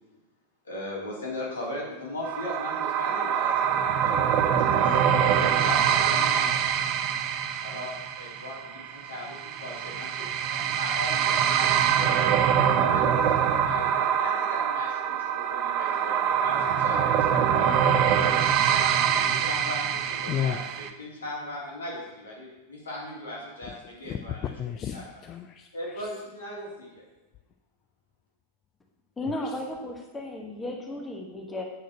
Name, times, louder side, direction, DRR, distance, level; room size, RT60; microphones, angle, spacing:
voice 1, 0.6-6.7 7.6-12.4 12.9-18.4 19.0-24.4 24.9-25.0 25.7-27.0, left 1 dB, 70° left, -4 dB, 3.6 m, -38 dB
sound 1, 2.2-20.9, right 8 dB, 40° right, 0.7 m, -24 dB
voice 2, 20.3-20.6 24.0-24.2 24.6-26.1 29.3-29.6, left 9 dB, 30° left, 7 dB, 0.5 m, -33 dB
voice 3, 29.2-31.6, left 1 dB, 15° left, 1 dB, 1.3 m, -34 dB
8.0 x 6.4 x 6.7 m, 1.1 s
figure-of-eight pair, 90°, 0 cm